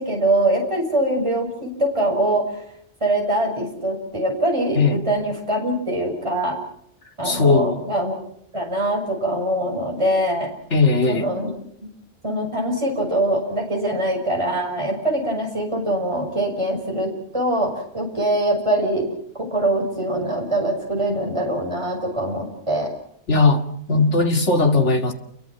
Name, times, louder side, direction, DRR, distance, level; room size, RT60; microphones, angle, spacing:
voice 1, 0.0-2.5 3.0-6.6 7.2-8.2 8.5-10.5 11.1-11.5 11.8-11.9 12.2-19.1 19.4-22.9 23.9-24.0, right 1 dB, 25° right, 6.6 m, -23 dB
voice 2, 7.2-7.9 10.7-11.3 23.3-23.6 23.9-25.1, left 3 dB, 65° left, 2.7 m, -18 dB
29.0 x 23.5 x 6.1 m
omnidirectional pair, 1.3 m